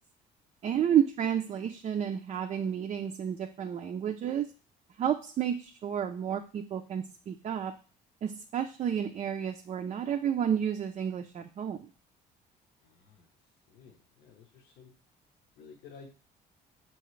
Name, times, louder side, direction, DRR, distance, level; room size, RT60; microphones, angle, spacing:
voice 1, 0.6-4.5 5.0-7.7 8.2-11.9, right 9 dB, 40° right, 5 dB, 0.4 m, -31 dB
voice 2, 12.8-13.3 13.7-14.9 15.6-16.1, left 5 dB, 70° left, 2 dB, 0.8 m, -53 dB
5.7 x 2.9 x 3.1 m, 0.38 s
cardioid pair, 110°, 17 cm